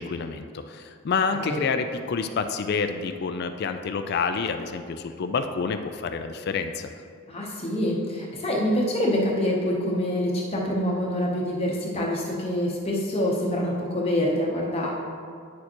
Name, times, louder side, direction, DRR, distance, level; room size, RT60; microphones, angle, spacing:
voice 1, 0.0-6.9, left 5 dB, 50° left, 8 dB, 0.3 m, -28 dB
voice 2, 7.3-14.9, left 1 dB, 30° left, -3 dB, 0.8 m, -26 dB
9.4 x 6.4 x 2.9 m, 2.2 s
head